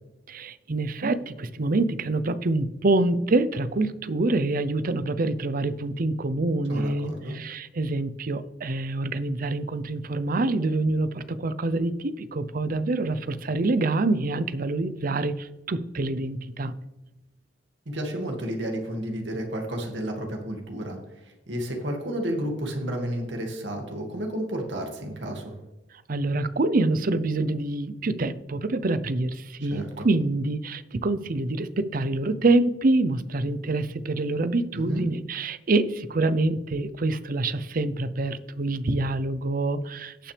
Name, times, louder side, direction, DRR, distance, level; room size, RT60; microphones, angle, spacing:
voice 1, 0.3-16.7 26.1-40.3, right 2 dB, 50° right, 14 dB, 0.6 m, -26 dB
voice 2, 6.7-7.3 17.9-25.5 29.6-30.1 34.7-35.0, right 1 dB, 75° right, 2 dB, 2.1 m, -32 dB
18.0 x 6.0 x 3.3 m, 0.99 s
head